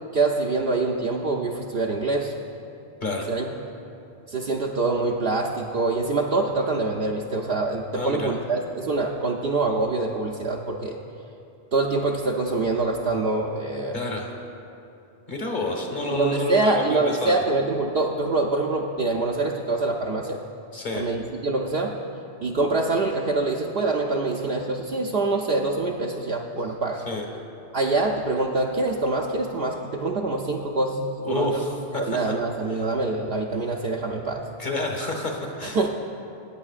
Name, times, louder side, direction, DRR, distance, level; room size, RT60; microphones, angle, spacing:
voice 1, 0.1-2.3 3.3-3.4 4.3-11.0 11.7-14.0 16.1-20.4 20.9-22.0 22.4-27.0 27.7-31.6 32.1-34.4 35.7-35.9, right 3 dB, 60° right, -1 dB, 0.8 m, -25 dB
voice 2, 3.0-3.3 7.9-8.3 13.9-14.3 15.3-17.3 20.7-21.0 26.9-27.2 31.3-32.3 32.7-32.9 34.6-35.9, left 2 dB, 45° left, 1 dB, 1.4 m, -29 dB
20.0 x 9.0 x 2.4 m, 2.7 s
omnidirectional pair, 1.2 m